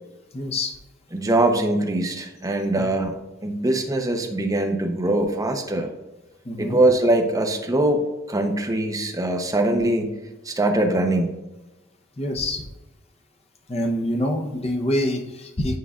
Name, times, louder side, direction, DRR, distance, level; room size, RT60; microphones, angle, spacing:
voice 1, 0.3-0.8 2.8-2.9 6.4-6.8 12.2-12.7 13.7-15.8, left 1 dB, 30° left, 2 dB, 0.8 m, -26 dB
voice 2, 1.1-3.1 3.4-5.9 6.6-8.0 8.3-10.1 10.4-11.3, right 1 dB, 20° right, 3 dB, 0.7 m, -22 dB
9.3 x 4.9 x 2.4 m, 1.0 s
head